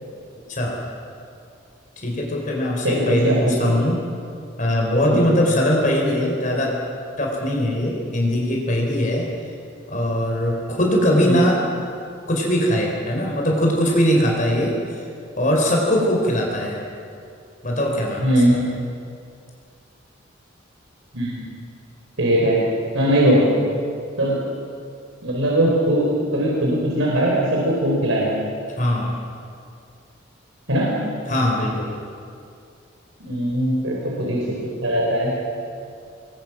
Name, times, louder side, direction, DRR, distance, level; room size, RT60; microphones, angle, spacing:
voice 1, 2.0-4.0 4.6-6.7 7.2-9.3 9.9-11.6 12.3-14.7 15.4-16.8 17.6-18.3 28.8-29.1 31.3-31.9, equal, 40° left, -1 dB, 4.1 m, -21 dB
voice 2, 2.8-3.7 5.1-5.3 11.2-11.4 18.2-18.5 21.1-21.4 22.2-22.6 22.9-23.4 24.2-24.4 25.2-28.3 30.7-31.0 33.2-34.5 34.8-35.3, right 1 dB, 85° right, -4 dB, 4.7 m, -20 dB
27.5 x 21.5 x 6.1 m, 2.4 s
head